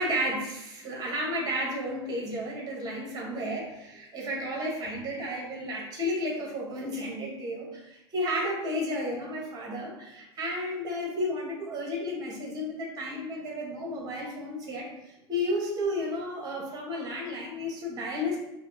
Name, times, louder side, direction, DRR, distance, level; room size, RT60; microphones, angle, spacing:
voice 1, 0.0-14.9 15.3-18.4, equal, 25° right, -2 dB, 1.3 m, -32 dB
5.0 x 2.3 x 2.7 m, 0.89 s
figure-of-eight pair, 85°, 14 cm